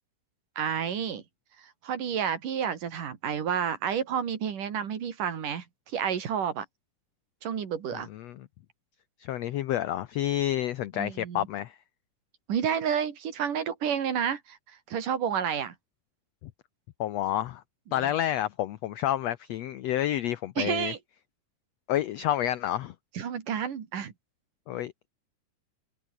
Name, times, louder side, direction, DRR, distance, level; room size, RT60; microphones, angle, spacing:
voice 1, 0.6-1.2 1.8-5.6 5.9-6.6 7.4-8.1 11.0-11.5 12.5-14.6 14.9-15.7 18.0-18.1 20.6-21.0 23.2-24.1, right 8 dB, 80° right, 4.2 m, -30 dB
voice 2, 7.9-8.5 9.2-11.8 17.0-17.6 17.9-20.9 21.9-22.9 24.7-25.1, left 12 dB, 70° left, 1.7 m, -29 dB
omnidirectional pair, 3.7 m